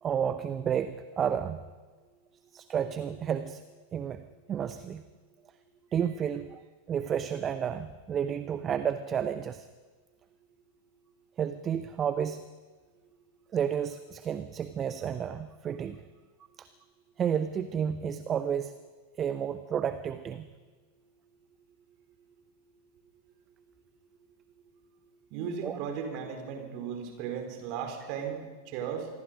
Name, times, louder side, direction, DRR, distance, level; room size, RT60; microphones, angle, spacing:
voice 1, 0.0-1.6 2.5-3.6 3.9-4.2 4.5-5.0 5.9-6.6 6.9-9.7 11.4-12.4 13.5-16.0 16.6-16.7 17.2-18.7 19.2-20.5 25.6-25.8, right 8 dB, 25° right, 12 dB, 0.8 m, -31 dB
voice 2, 25.3-29.1, right 7 dB, 45° right, 4 dB, 4.4 m, -36 dB
26.5 x 20.5 x 5.3 m, 1.4 s
figure-of-eight pair, 90°, 0 cm